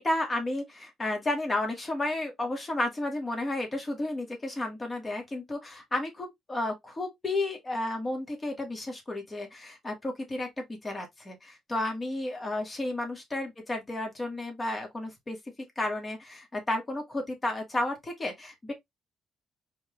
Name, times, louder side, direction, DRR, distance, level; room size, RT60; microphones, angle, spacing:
voice 1, 0.0-15.4 15.8-18.7, left 1 dB, 25° left, 2.2 m, -32 dB
4.3 x 3.7 x 3.2 m
cardioid pair, 90°, 0 cm